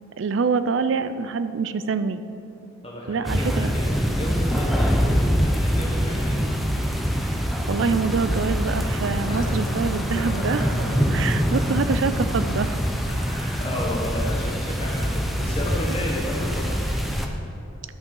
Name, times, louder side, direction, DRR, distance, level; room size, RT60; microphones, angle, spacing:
voice 1, 0.2-2.2 3.1-3.7 7.7-10.6 11.1-12.8, right 5 dB, 60° right, 12 dB, 0.4 m, -25 dB
voice 2, 2.8-6.5 9.3-9.9 10.1-10.9 11.5-11.8 13.1-16.8, left 1 dB, 25° left, -4 dB, 1.2 m, -33 dB
sound 1, 3.2-17.3, equal, ahead, 0.5 m, -24 dB
11.5 x 5.6 x 5.4 m, 2.7 s
head